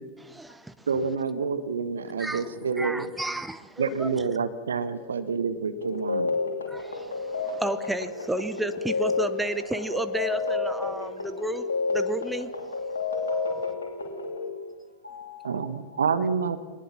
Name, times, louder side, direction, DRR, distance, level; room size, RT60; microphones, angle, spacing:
voice 1, 0.2-0.9 2.2-4.2 6.7-12.5, right 1 dB, 5° right, 12 dB, 0.9 m, -32 dB
voice 2, 0.9-3.1 3.8-6.4 15.4-16.6, right 5 dB, 70° right, 12 dB, 1.3 m, -28 dB
sound 1, 5.8-14.5, left 4 dB, 70° left, 3.1 m, -30 dB
voice 3, 13.6-16.1, left 6 dB, 90° right, 1 dB, 5.0 m, -49 dB
22.0 x 19.5 x 7.1 m, 1.3 s
figure-of-eight pair, 90°, 0 cm